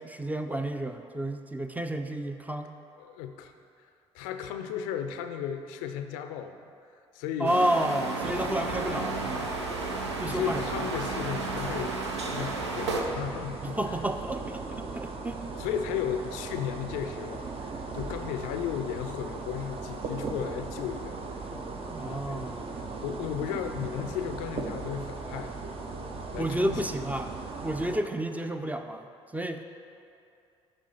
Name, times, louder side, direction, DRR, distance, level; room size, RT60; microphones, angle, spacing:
voice 1, 0.0-2.7 7.4-9.5 10.2-10.9 13.6-15.4 21.9-22.8 26.4-27.3 27.6-29.6, right 1 dB, 10° right, 7 dB, 0.5 m, -31 dB
voice 2, 3.0-3.5 4.1-6.6 7.1-7.5 10.3-14.0 15.6-21.6 22.0-22.5 22.8-25.6 26.3-26.8, left 9 dB, 70° left, 8 dB, 0.4 m, -35 dB
sound 1, 7.4-13.0, right 3 dB, 90° right, 0.5 m, -33 dB
sound 2, 8.2-28.0, right 3 dB, 45° right, 0.7 m, -38 dB
11.0 x 3.6 x 4.3 m, 2.5 s
hypercardioid pair, 50°, 14 cm